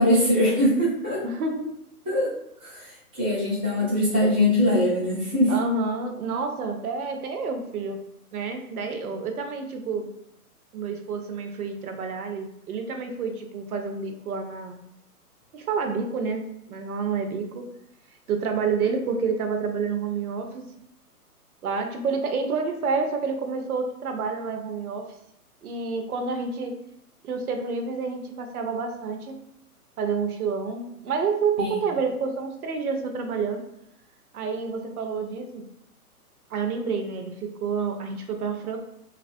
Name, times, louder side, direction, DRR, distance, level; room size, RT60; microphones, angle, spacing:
voice 1, 0.0-1.2 2.1-2.3 2.6-5.5 31.6-31.7, left 1 dB, 5° right, -17 dB, 0.4 m, -22 dB
voice 2, 1.2-1.7 5.5-8.0 8.3-10.1 10.7-14.8 15.5-17.7 18.3-20.6 21.6-25.1 25.6-26.8 27.2-29.4 30.0-33.6 34.3-35.7 36.5-38.8, right 5 dB, 70° right, 5 dB, 0.7 m, -29 dB
2.8 x 2.4 x 2.5 m, 0.78 s
hypercardioid pair, 155°, 45 cm